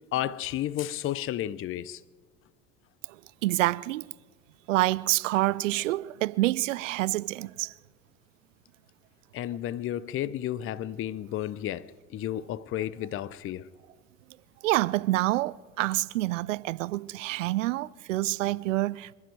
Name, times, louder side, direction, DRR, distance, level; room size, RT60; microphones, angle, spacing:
voice 1, 0.1-2.0 9.3-13.7, left 12 dB, 35° left, 0.6 m, -32 dB
voice 2, 3.4-4.1 4.7-7.7 14.6-19.1, right 18 dB, 75° right, 0.5 m, -27 dB
26.5 x 11.5 x 4.7 m
hypercardioid pair, 75°, 38 cm